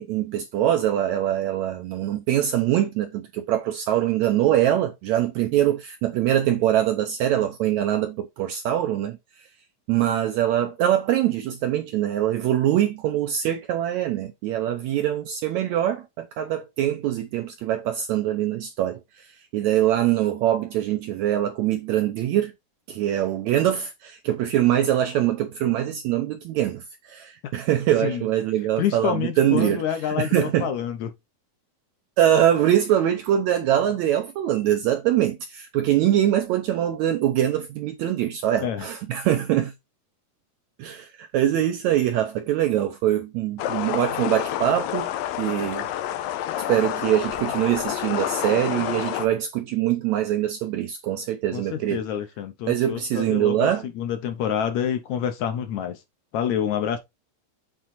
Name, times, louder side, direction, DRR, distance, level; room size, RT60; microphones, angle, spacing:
voice 1, 0.0-9.2 9.9-19.3 19.5-22.5 22.9-30.7 32.2-39.7 40.8-45.1 45.4-45.9 46.7-52.0 52.7-53.8, right 11 dB, 80° right, 1.6 m, -23 dB
voice 2, 28.8-31.1 38.6-38.9 51.5-56.0 56.3-57.0, left 9 dB, 70° left, 1.8 m, -27 dB
sound 1, 43.6-49.3, left 12 dB, 90° left, 2.4 m, -28 dB
7.7 x 3.6 x 4.2 m
omnidirectional pair, 3.9 m